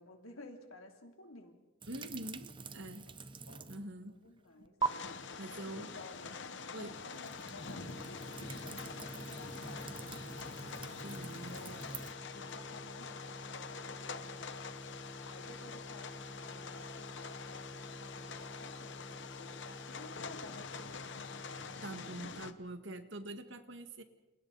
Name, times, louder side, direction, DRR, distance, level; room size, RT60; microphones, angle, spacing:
voice 1, 0.0-1.5 3.1-3.2 3.5-3.9 4.2-4.7 5.5-6.4 6.8-10.6 11.5-11.8 12.3-15.0 15.2-21.6, left 2 dB, 80° left, 3 dB, 3.1 m, -54 dB
sound 1, 1.8-3.9 4.3-4.9 7.0-12.1, right 5 dB, 20° right, 0.7 m, -43 dB
voice 2, 1.9-3.1 3.4-4.2 4.6-4.8 5.4-5.9 6.7-6.9 11.0-11.8 21.8-24.0, right 1 dB, 55° right, 8 dB, 1.8 m, -45 dB
sound 2, 4.8-22.5, left 5 dB, 55° left, 1.1 m, -46 dB
sound 3, 7.8-22.3, left 1 dB, 25° left, 1.1 m, -50 dB
29.0 x 29.0 x 4.1 m, 1.0 s
head